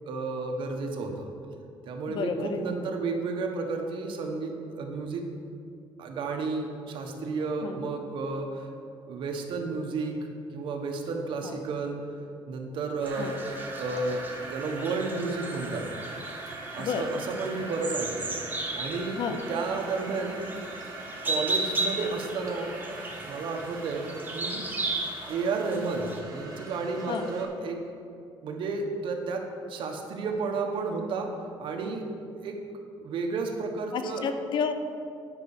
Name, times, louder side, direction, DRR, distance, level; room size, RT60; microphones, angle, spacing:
voice 1, 0.0-1.3 1.8-5.2 6.0-8.7 9.1-10.2 10.5-12.0 12.5-13.4 13.7-15.8 16.7-18.3 18.7-19.2 19.5-20.4 21.2-22.7 23.3-24.6 25.3-27.8 28.4-29.4 29.7-31.3 31.6-32.0 32.3-32.6 33.0-34.2, right 4 dB, 75° right, 2 dB, 1.3 m, -32 dB
voice 2, 2.1-2.6 7.6-7.9 11.4-11.6 13.2-13.4 16.8-17.0 19.2-19.4 27.1-27.3 33.9-34.7, left 6 dB, 65° left, 8 dB, 0.7 m, -31 dB
sound 1, 13.0-26.2, right 2 dB, 20° right, 1.2 m, -36 dB
sound 2, 13.0-27.4, right 2 dB, 45° right, 1.6 m, -42 dB
9.7 x 5.5 x 6.7 m, 2.5 s
cardioid pair, 125°, 9 cm